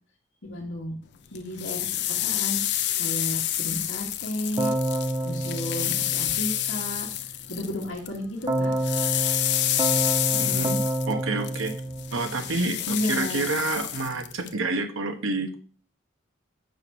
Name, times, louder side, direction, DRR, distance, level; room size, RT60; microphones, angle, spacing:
voice 1, 0.4-0.9 1.3-4.7 5.2-8.7 10.3-10.8 12.9-13.5, left 1 dB, 75° left, -3 dB, 1.5 m, -33 dB
sound 1, 1.3-8.2 8.4-14.5, left 12 dB, 55° left, 0.6 m, -28 dB
Keyboard (musical), 4.6-6.9 8.5-12.8, right 1 dB, 20° right, 0.6 m, -29 dB
voice 2, 10.4-10.7 11.1-11.7 12.1-15.5, right 3 dB, 85° right, 6 dB, 1.2 m, -28 dB
6.7 x 4.6 x 6.3 m, 0.41 s
head